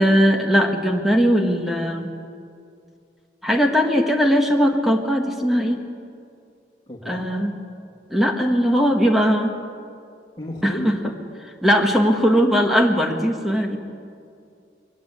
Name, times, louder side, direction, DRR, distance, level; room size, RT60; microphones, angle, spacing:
voice 1, 0.0-2.1 3.4-5.8 7.1-7.5 8.1-9.6 10.6-11.0 11.6-13.8, equal, ahead, 3 dB, 1.4 m, -19 dB
voice 2, 6.9-7.3 10.4-11.0, left 1 dB, 25° left, -4 dB, 2.6 m, -31 dB
22.5 x 18.0 x 8.7 m, 2.4 s
head